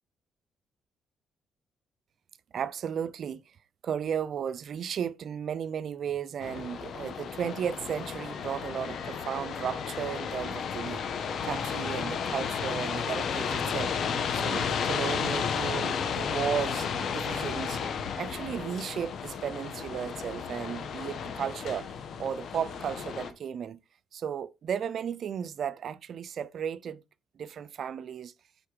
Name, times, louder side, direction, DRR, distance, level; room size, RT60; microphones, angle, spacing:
voice 1, 2.5-3.4 3.8-11.0 11.4-13.9 14.3-17.8 18.2-21.9 22.2-23.8 24.1-27.0 27.4-28.3, right 8 dB, 60° right, 0.6 m, -34 dB
sound 1, 6.4-23.3, left 6 dB, 65° left, 1.4 m, -33 dB
9.0 x 4.5 x 5.1 m
cardioid pair, 90°, 0 cm